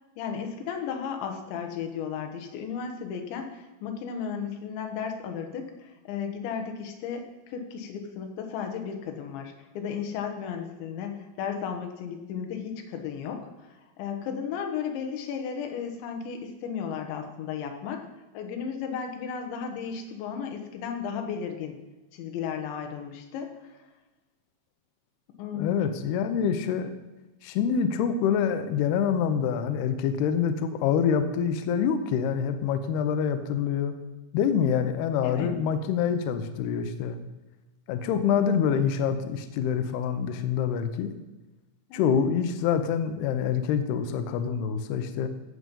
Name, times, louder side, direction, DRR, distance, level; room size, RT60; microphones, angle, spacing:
voice 1, 0.2-13.5 14.0-18.0 18.3-21.8 22.1-23.7 25.4-25.9 35.2-35.5 41.9-42.2, left 7 dB, 70° left, 4 dB, 3.4 m, -34 dB
voice 2, 25.5-26.9 27.4-33.9 34.3-37.2 37.9-41.1 41.9-45.3, left 7 dB, 85° left, 9 dB, 2.2 m, -26 dB
14.5 x 7.8 x 5.4 m, 1.1 s
omnidirectional pair, 5.8 m